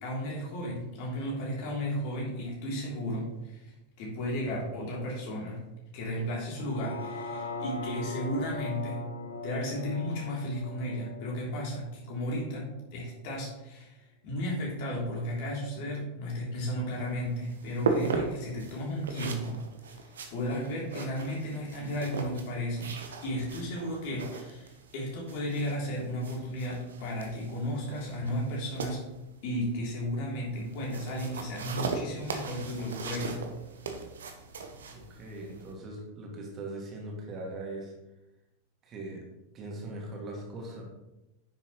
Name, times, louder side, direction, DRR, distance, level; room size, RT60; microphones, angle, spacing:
voice 1, 0.0-5.6 5.9-9.0 9.4-19.6 19.9-20.0 20.3-22.9 23.2-29.0 29.4-33.4, equal, 45° left, -3 dB, 3.1 m, -34 dB
sound 1, 6.5-12.7 13.1-13.2, left 3 dB, 80° left, 0.8 m, -40 dB
sound 2, 16.9-35.7, right 4 dB, 65° right, 1.0 m, -38 dB
voice 2, 34.9-37.9 38.8-39.2 39.5-40.8, right 2 dB, 30° right, -1 dB, 2.2 m, -40 dB
9.9 x 6.9 x 3.1 m, 0.96 s
figure-of-eight pair, 90°, 0 cm